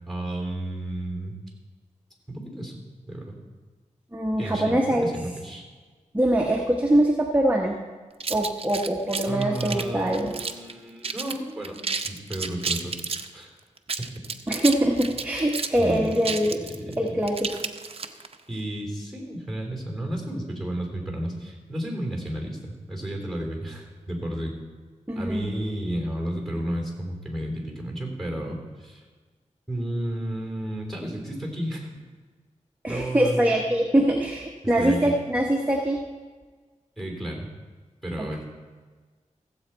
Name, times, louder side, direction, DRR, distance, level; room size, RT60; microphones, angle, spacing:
voice 1, 0.1-1.3 2.3-2.8 3.1-3.4 4.4-5.6 9.3-11.8 12.1-12.9 13.3-13.5 15.8-16.3 16.7-17.2 18.5-24.5 25.1-29.0 29.7-31.9 32.9-33.5 34.8-35.1 37.0-37.5 38.0-38.4, right 1 dB, 5° left, 1 dB, 3.2 m, -32 dB
voice 2, 4.1-5.1 6.1-7.8 8.3-10.3 14.5-16.6 17.0-17.5 25.1-25.4 32.8-36.0, right 1 dB, 15° right, 0 dB, 1.0 m, -23 dB
sound 1, 8.2-10.7 11.0-11.4 11.6-13.3 13.8-18.3, right 4 dB, 50° right, 0.7 m, -31 dB
15.5 x 7.9 x 4.4 m, 1.4 s
wide cardioid pair, 80°, 13 cm